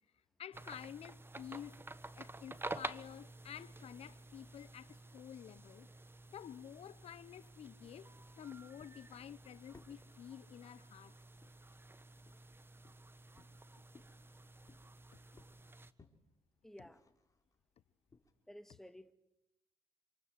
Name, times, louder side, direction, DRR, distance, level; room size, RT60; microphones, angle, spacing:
voice 1, 0.4-1.8 2.1-5.9 6.3-11.1, left 9 dB, 70° left, 1.0 m, -51 dB
sound 1, 0.5-15.9, right 2 dB, 20° right, 1.4 m, -51 dB
sound 2, 3.5-18.3, left 3 dB, 30° left, 4.1 m, -68 dB
voice 2, 16.6-17.0 18.5-19.1, equal, 5° left, 2.0 m, -54 dB
28.0 x 26.5 x 7.9 m
cardioid pair, 65°, 11 cm